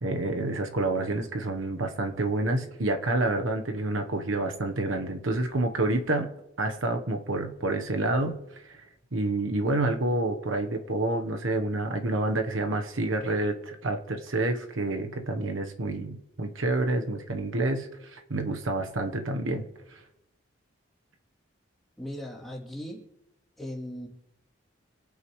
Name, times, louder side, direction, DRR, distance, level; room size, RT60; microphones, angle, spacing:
voice 1, 0.0-8.8 9.1-20.0, right 2 dB, 80° right, 5 dB, 1.1 m, -28 dB
voice 2, 22.0-23.0 23.6-24.1, equal, ahead, -6 dB, 3.0 m, -38 dB
26.5 x 9.3 x 3.2 m, 0.90 s
head